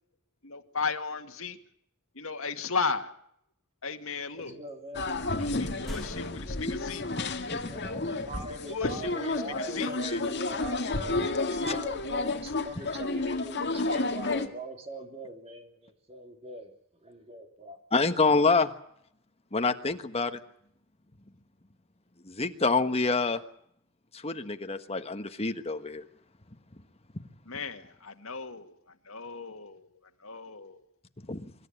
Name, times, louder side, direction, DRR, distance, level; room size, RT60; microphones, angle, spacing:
voice 1, 0.4-1.6 2.1-3.1 3.8-4.6 5.4-7.3 8.3-10.3 27.5-28.8 29.1-29.9 30.2-30.9, left 5 dB, 70° left, 6 dB, 2.1 m, -36 dB
voice 2, 4.3-5.0 7.5-16.7 17.0-17.8, right 1 dB, 30° right, 4 dB, 3.3 m, -42 dB
sound 1, 4.9-14.5, left 2 dB, 55° left, 2.0 m, -31 dB
sound 2, 5.0-5.2 5.4-7.5, equal, ahead, 1.7 m, -44 dB
voice 3, 5.6-5.9 7.1-8.1 11.7-11.8 17.9-18.7 19.5-20.4 22.2-23.4 24.1-26.0 31.3-31.5, left 3 dB, 30° left, 8 dB, 1.4 m, -27 dB
25.0 x 13.0 x 10.0 m, 0.70 s
head